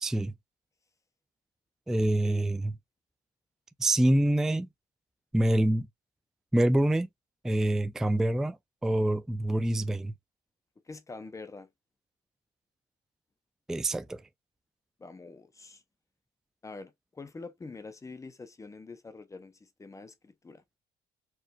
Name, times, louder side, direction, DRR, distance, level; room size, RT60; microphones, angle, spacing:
voice 1, 0.0-0.3 1.9-2.7 3.8-4.7 5.3-5.9 6.5-7.1 7.4-10.1 13.7-14.2, right 1 dB, 5° right, 0.3 m, -26 dB
voice 2, 2.0-2.4 10.8-11.7 15.0-15.8 16.6-20.6, left 3 dB, 20° left, 0.8 m, -45 dB
4.6 x 2.6 x 2.3 m
cardioid pair, 110°, 17 cm